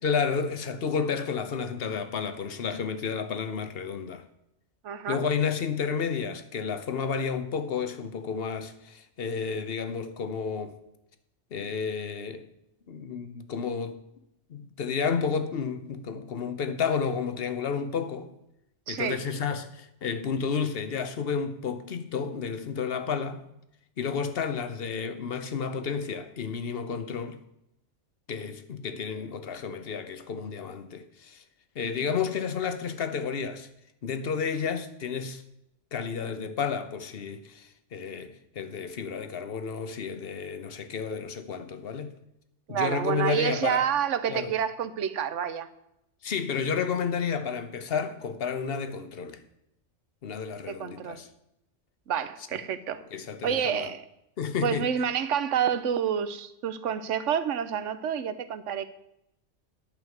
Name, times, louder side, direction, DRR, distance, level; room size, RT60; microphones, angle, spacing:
voice 1, 0.0-4.2 5.1-10.8 11.5-12.5 12.9-14.0 14.5-18.3 18.9-23.4 24.0-27.4 28.3-31.4 31.7-33.7 34.0-35.4 35.9-42.1 42.7-43.8 44.3-44.5 46.2-49.4 50.2-51.3 53.1-53.9 54.4-54.9, left 6 dB, 55° left, 1.1 m, -31 dB
voice 2, 4.8-5.2 18.9-19.2 42.7-45.7 50.7-51.2 52.1-53.0 53.4-54.0 54.6-58.8, right 8 dB, 75° right, 1.1 m, -28 dB
10.5 x 5.5 x 7.8 m
omnidirectional pair, 1.3 m